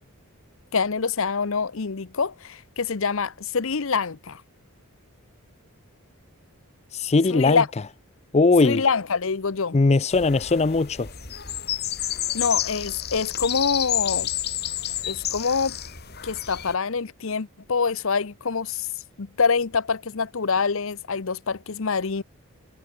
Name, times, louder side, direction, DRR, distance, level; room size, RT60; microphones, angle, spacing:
voice 1, 0.7-4.4 7.3-7.7 8.6-9.8 12.3-14.3 15.0-15.7 16.2-18.9 19.2-22.2, left 5 dB, 60° left, 0.8 m, -25 dB
voice 2, 6.9-7.6 8.3-8.8 9.7-11.1, left 3 dB, 30° left, 0.4 m, -19 dB
sound 1, 10.1-16.7, left 11 dB, 45° left, 5.2 m, -30 dB
head